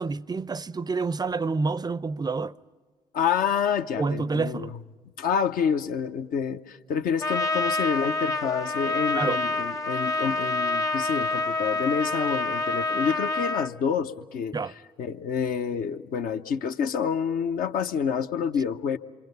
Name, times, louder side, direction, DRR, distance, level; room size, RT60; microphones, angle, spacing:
voice 1, 0.0-2.6 4.0-4.7 9.1-9.4 14.5-14.7, right 4 dB, 25° right, 0.6 m, -28 dB
voice 2, 3.1-4.8 5.2-14.5 15.0-19.0, left 7 dB, 60° left, 1.0 m, -28 dB
Trumpet, 7.2-13.7, left 2 dB, 20° left, 0.9 m, -27 dB
28.0 x 24.0 x 5.5 m
figure-of-eight pair, 45°, 17 cm